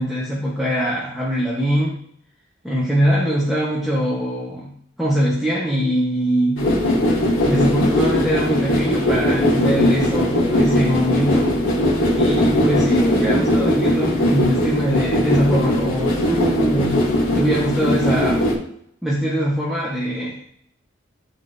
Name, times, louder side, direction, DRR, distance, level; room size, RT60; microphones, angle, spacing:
voice 1, 0.0-2.0 2.6-6.7 7.4-11.5 12.1-17.0 17.3-18.4 19.0-20.4, equal, ahead, -6 dB, 1.0 m, -22 dB
sound 1, 6.6-18.5, left 1 dB, 90° left, 2.4 m, -19 dB
11.0 x 3.8 x 2.6 m, 0.68 s
head